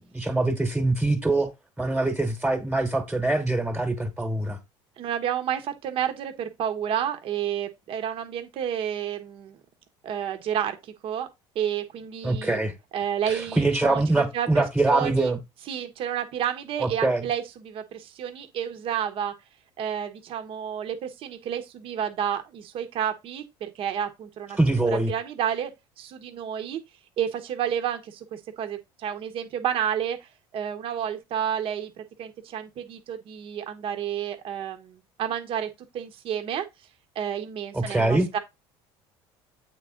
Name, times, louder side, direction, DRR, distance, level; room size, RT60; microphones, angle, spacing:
voice 1, 0.0-1.5 1.8-4.6 12.2-12.7 13.3-15.4 16.8-17.3 24.5-25.1 37.7-38.3, right 2 dB, 5° right, 1.4 m, -24 dB
voice 2, 5.0-9.6 10.0-11.3 11.5-12.6 12.9-14.0 14.3-15.3 15.7-19.3 19.8-24.6 24.9-25.7 26.0-26.8 27.2-36.7 37.1-38.4, right 9 dB, 55° right, 1.2 m, -30 dB
8.1 x 3.9 x 3.8 m
supercardioid pair, 105°, 11 cm